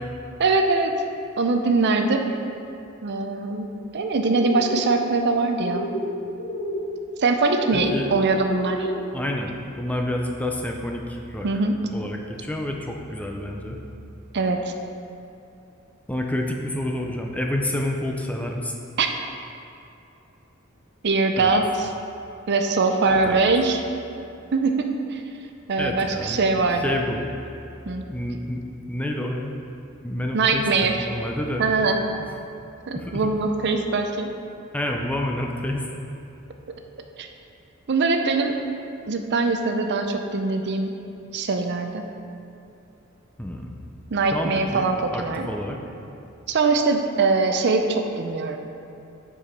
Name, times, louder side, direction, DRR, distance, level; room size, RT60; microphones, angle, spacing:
voice 1, 0.4-1.0 1.4-2.3 3.0-5.9 7.2-8.9 11.4-11.8 14.3-14.7 19.0-19.1 21.0-21.9 22.5-23.8 24.5-25.2 25.7-27.0 27.9-28.0 30.3-31.1 31.6-32.0 32.9-34.3 37.2-37.3 37.9-38.5 39.1-40.9 41.3-42.0 44.1-45.5 46.5-48.6, right 3 dB, 55° right, 5 dB, 0.5 m, -22 dB
sound 1, 4.4-4.9 5.6-6.1 6.3-6.8 7.5-8.0 8.5-9.0, left 1 dB, 65° left, 1.0 m, -30 dB
voice 2, 7.7-8.1 9.1-9.5 9.8-11.6 11.9-13.8 16.1-18.7 21.4-21.5 23.1-23.4 25.8-26.5 26.8-27.5 28.1-28.6 28.9-29.5 30.0-31.7 32.9-33.2 34.7-35.9 43.4-43.7 44.3-44.8 45.1-45.8, left 1 dB, 5° left, 1 dB, 0.5 m, -29 dB
7.1 x 4.8 x 5.2 m, 2.7 s
head